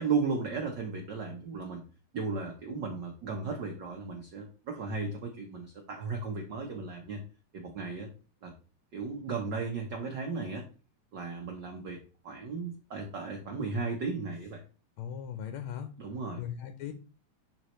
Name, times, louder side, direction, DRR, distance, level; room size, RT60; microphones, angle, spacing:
voice 1, 0.0-1.8 2.1-7.2 7.5-8.1 8.4-8.5 8.9-10.7 11.1-14.6 16.0-16.4, right 4 dB, 70° right, 2 dB, 1.0 m, -35 dB
voice 2, 15.0-15.9 16.4-16.9, left 9 dB, 75° left, 8 dB, 1.8 m, -38 dB
10.5 x 4.1 x 3.1 m, 0.36 s
omnidirectional pair, 3.4 m